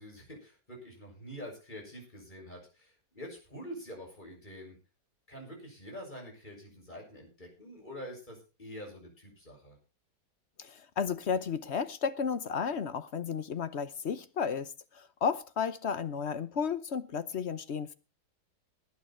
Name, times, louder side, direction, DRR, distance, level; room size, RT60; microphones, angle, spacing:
voice 1, 0.0-4.8 5.3-9.8, equal, 25° left, 7.2 m, -46 dB
voice 2, 10.6-17.9, left 6 dB, 45° left, 1.0 m, -33 dB
19.5 x 9.0 x 4.4 m
omnidirectional pair, 1.9 m